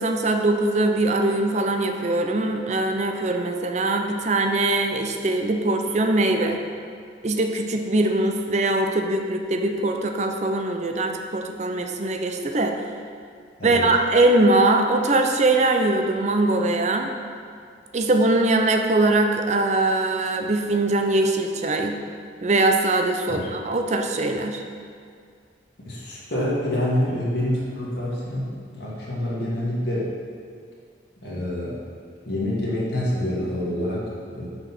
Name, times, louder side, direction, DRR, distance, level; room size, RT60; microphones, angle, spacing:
voice 1, 0.0-6.6 7.2-12.7 13.6-17.1 17.9-22.0 22.4-24.6, right 2 dB, 40° right, 4 dB, 0.5 m, -22 dB
voice 2, 25.8-30.1 31.2-31.8 32.2-34.5, left 1 dB, 65° left, -6 dB, 1.6 m, -27 dB
6.2 x 4.9 x 6.0 m, 2.3 s
head